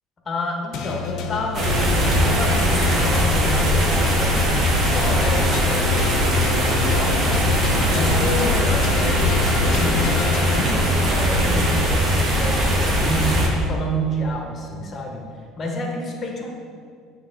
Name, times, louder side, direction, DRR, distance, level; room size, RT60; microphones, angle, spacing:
voice 1, 0.2-7.6 7.9-10.2 10.5-15.2 15.6-16.5, equal, 30° left, 1 dB, 1.3 m, -29 dB
sound 1, 0.7-11.3, left 7 dB, 60° left, 0.5 m, -27 dB
sound 2, 1.5-13.5, equal, 40° right, 1.5 m, -20 dB
Bathtub (filling or washing), 1.8-8.6, right 8 dB, 60° right, 0.4 m, -34 dB
8.4 x 3.6 x 3.7 m, 2.1 s
hypercardioid pair, 70°, 0 cm